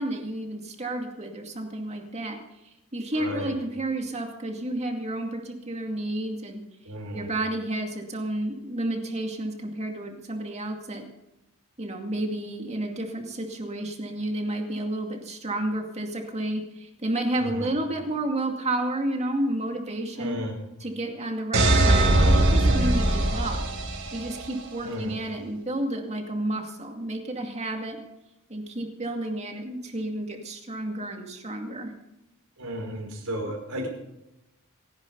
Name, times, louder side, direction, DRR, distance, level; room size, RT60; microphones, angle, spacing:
voice 1, 0.0-2.4 2.9-6.6 7.1-11.1 11.8-20.4 20.8-23.6 24.1-28.0 28.5-31.9, right 1 dB, 30° right, 3 dB, 2.3 m, -31 dB
voice 2, 3.1-3.5 6.8-7.3 17.4-17.8 20.1-20.5 24.8-25.2 32.6-33.9, equal, 85° right, 1 dB, 4.9 m, -33 dB
sound 1, 21.5-24.4, right 1 dB, 65° right, 4.1 m, -21 dB
28.0 x 10.5 x 4.0 m, 0.94 s
head